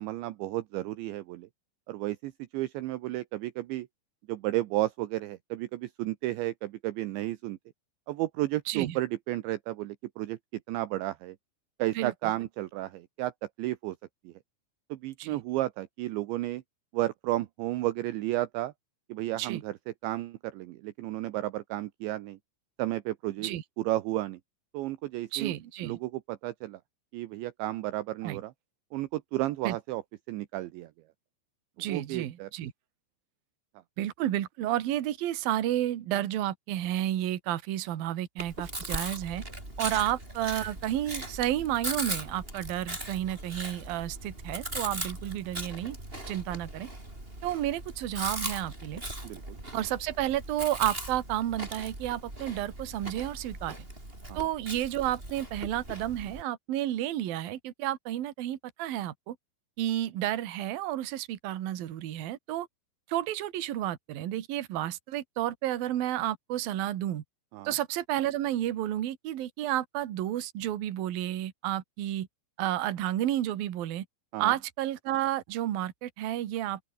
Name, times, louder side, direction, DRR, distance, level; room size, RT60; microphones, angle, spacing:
voice 1, 0.0-1.5 1.9-3.9 4.3-7.6 8.1-10.4 10.7-11.4 11.8-13.3 13.6-14.0 14.2-14.3 14.9-16.6 16.9-18.7 19.1-19.8 20.0-22.4 22.8-23.5 23.8-24.4 24.7-25.5 25.8-26.8 27.1-28.5 28.9-30.0 30.3-30.9 31.9-32.5 49.2-49.6 54.3-54.4 67.5-67.7 74.3-74.5, right 16 dB, 75° right, 3.0 m, -32 dB
voice 2, 8.7-9.0 11.9-12.1 15.2-15.4 19.4-19.6 23.4-23.6 25.3-26.0 28.2-28.4 29.6-29.8 31.8-32.7 34.0-39.4 39.8-46.0 46.3-46.9 47.4-49.0 49.7-53.8 54.3-59.4 59.8-62.7 63.1-67.2 67.6-72.3 72.6-74.1 74.4-76.8, right 13 dB, 60° right, 3.0 m, -31 dB
Chewing mastication, 38.4-56.4, right 1 dB, 10° right, 7.0 m, -39 dB
open air
omnidirectional pair, 5.8 m